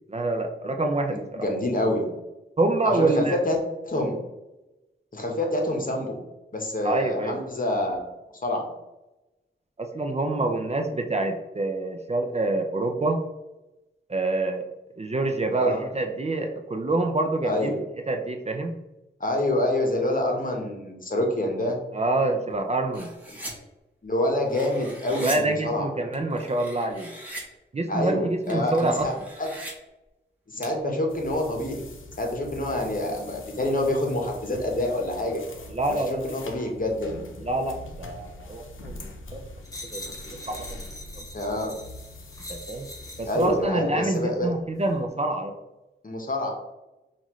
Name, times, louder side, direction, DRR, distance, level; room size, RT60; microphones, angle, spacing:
voice 1, 0.1-1.4 2.6-3.4 6.8-7.4 9.8-13.2 14.1-14.7 15.0-17.7 18.1-18.7 21.9-23.1 25.1-27.1 27.7-29.1 35.7-36.3 37.4-39.1 39.8-40.0 40.3-40.9 41.1-41.2 42.5-42.9 43.2-45.5, right 2 dB, 30° right, 4 dB, 0.5 m, -26 dB
voice 2, 1.4-2.1 2.8-3.6 3.8-4.2 5.1-6.2 6.5-8.1 8.4-8.7 15.5-15.8 17.4-17.8 19.2-21.8 24.0-25.9 27.9-29.5 30.5-31.8 32.2-35.4 35.9-37.3 41.3-41.7 43.3-44.5 46.0-46.5, left 1 dB, 45° left, 1 dB, 1.1 m, -27 dB
sound 1, 22.9-23.5 24.2-25.4 26.1-27.4 28.4-29.7 30.6-30.7, right 1 dB, 10° right, 1.3 m, -39 dB
sound 2, 31.1-43.7, left 2 dB, 85° left, 0.6 m, -43 dB
sound 3, 39.6-43.4 44.0-44.2, left 1 dB, 15° left, 0.8 m, -42 dB
5.5 x 2.5 x 3.1 m, 0.99 s
wide cardioid pair, 65°, 20 cm